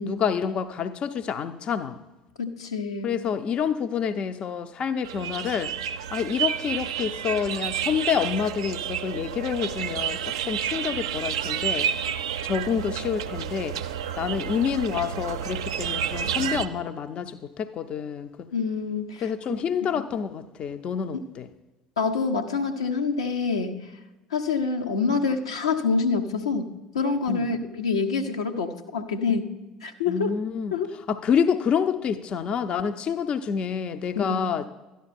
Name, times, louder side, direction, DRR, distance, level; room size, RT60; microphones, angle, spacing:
voice 1, 0.1-2.0 3.0-5.8 6.1-11.9 12.4-13.8 14.2-18.3 19.2-21.5 27.3-27.5 30.1-34.7, left 7 dB, 40° left, 10 dB, 0.5 m, -28 dB
voice 2, 2.4-3.1 18.5-19.3 19.9-20.0 21.1-21.2 22.0-23.9 24.3-29.5 29.8-30.3 30.7-30.9 34.1-34.4, left 4 dB, 75° left, 4 dB, 0.7 m, -26 dB
sound 1, 5.0-16.7, right 9 dB, 70° right, 0.4 m, -30 dB
12.5 x 10.5 x 4.2 m, 1.1 s
figure-of-eight pair, 60°, 3 cm